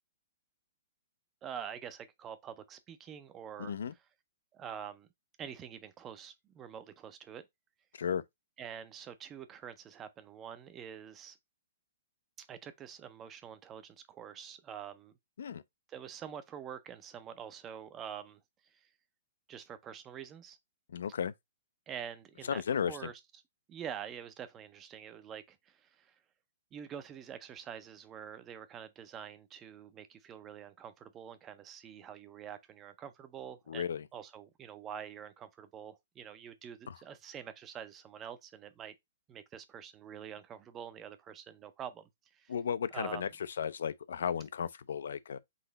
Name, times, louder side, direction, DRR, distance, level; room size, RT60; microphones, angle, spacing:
voice 1, 1.4-4.1 4.5-5.1 5.4-7.4 8.6-11.4 12.4-15.1 15.9-18.9 19.5-20.6 21.9-23.4 23.7-26.2 26.7-38.9 39.3-42.0 42.3-42.5 42.9-43.3, right 8 dB, 15° right, 0.4 m, -46 dB
voice 2, 3.6-3.9 7.9-8.2 15.4-15.6 20.9-21.3 22.5-23.1 33.7-34.0 36.9-37.0 42.5-43.3 43.6-45.4, left 7 dB, 75° left, 0.4 m, -34 dB
3.9 x 2.9 x 3.9 m
hypercardioid pair, 175°, 0 cm